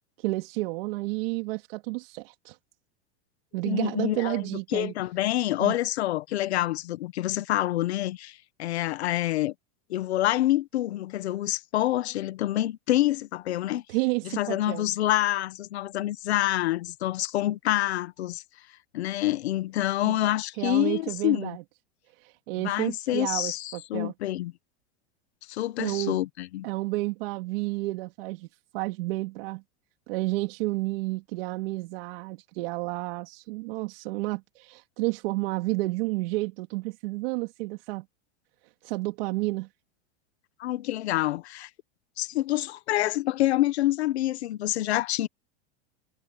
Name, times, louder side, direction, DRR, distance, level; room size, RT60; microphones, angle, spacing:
voice 1, 0.2-2.6 3.5-4.9 5.6-5.7 13.9-14.9 20.1-20.2 20.6-21.6 22.1-24.1 25.8-26.2 26.6-28.5 28.7-29.6 30.1-38.0 38.8-39.7, right 21 dB, 60° right, 2.8 m, -31 dB
voice 2, 3.6-4.4 4.7-9.5 9.9-13.8 14.2-18.4 18.9-21.5 22.6-24.5 25.5-26.6 40.6-41.7 42.2-45.3, left 15 dB, 80° left, 1.4 m, -27 dB
supercardioid pair, 140°, 32 cm